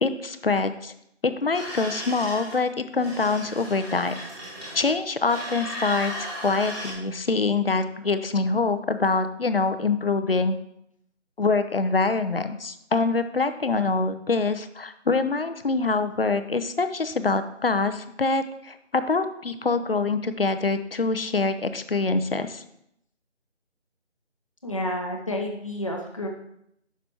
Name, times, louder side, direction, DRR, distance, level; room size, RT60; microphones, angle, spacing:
voice 1, 0.0-0.9 1.2-4.2 4.7-6.1 6.4-10.5 11.4-22.6, left 3 dB, 55° left, 10 dB, 0.6 m, -25 dB
sound 1, 1.5-2.6 3.0-4.9 5.2-6.9, equal, 20° right, 1.7 m, -36 dB
voice 2, 24.6-26.3, left 1 dB, 30° left, 0 dB, 0.8 m, -30 dB
9.9 x 6.0 x 2.9 m, 0.76 s
figure-of-eight pair, 165°, 36 cm